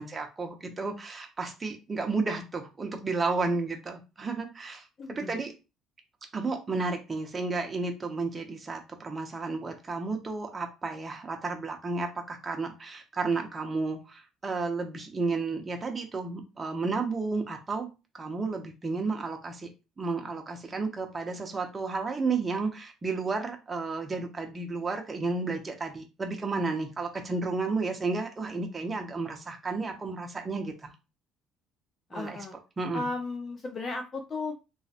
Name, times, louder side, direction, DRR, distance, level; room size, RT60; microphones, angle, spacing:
voice 1, 0.0-5.5 6.3-17.9 18.1-19.7 20.0-30.9 32.1-32.4 32.8-33.0, right 3 dB, 20° right, 3 dB, 0.8 m, -32 dB
voice 2, 5.0-5.4 32.1-32.6 32.9-34.6, left 3 dB, 35° left, 4 dB, 0.6 m, -35 dB
3.1 x 3.0 x 2.9 m, 0.28 s
cardioid pair, 120°, 0 cm